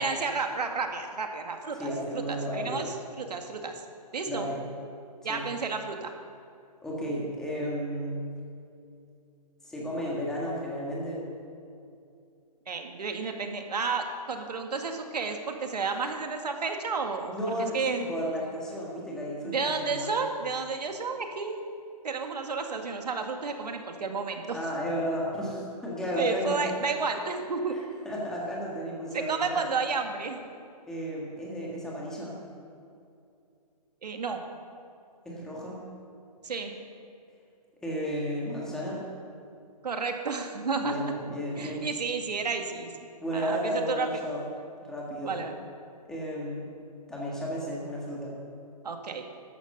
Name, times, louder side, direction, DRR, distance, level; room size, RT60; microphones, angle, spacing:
voice 1, 0.0-3.7 4.1-4.5 5.2-6.1 12.7-18.0 19.4-21.6 22.0-24.6 26.2-27.8 29.1-30.4 34.0-34.4 36.4-36.7 39.8-41.0 41.6-42.9 43.3-44.1 45.2-45.5 48.8-49.2, right 4 dB, 75° right, 5 dB, 1.9 m, -31 dB
voice 2, 1.8-2.9 4.3-4.6 5.3-5.4 6.8-8.2 9.6-11.3 17.3-20.2 24.5-26.7 27.7-29.6 30.9-32.4 35.2-35.8 37.8-39.0 40.8-41.9 43.2-44.4 44.8-45.4 46.0-46.7 47.1-48.4, equal, 5° left, -4 dB, 1.7 m, -33 dB
13.0 x 10.5 x 6.8 m, 2.5 s
hypercardioid pair, 170°, 21 cm